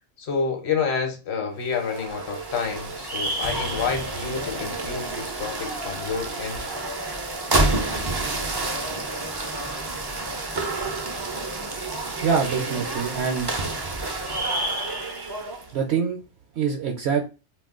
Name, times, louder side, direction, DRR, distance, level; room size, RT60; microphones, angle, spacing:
voice 1, 0.2-6.6, left 5 dB, 65° left, 1.0 m, -29 dB
sound 1, 1.6-15.7, right 2 dB, 40° right, 0.3 m, -29 dB
voice 2, 12.2-13.5 15.7-16.2 16.5-17.3, right 6 dB, 70° right, 0.8 m, -24 dB
2.4 x 2.2 x 3.6 m
omnidirectional pair, 1.3 m